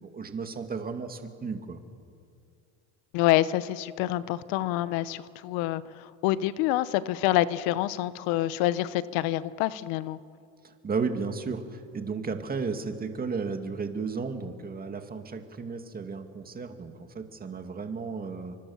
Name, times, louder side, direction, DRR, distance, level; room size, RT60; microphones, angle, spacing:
voice 1, 0.0-1.8 10.6-18.6, right 5 dB, 20° right, 6 dB, 2.2 m, -34 dB
voice 2, 3.1-10.2, left 15 dB, 80° left, 16 dB, 1.0 m, -27 dB
29.0 x 24.5 x 7.2 m, 2.4 s
cardioid pair, 140°, 39 cm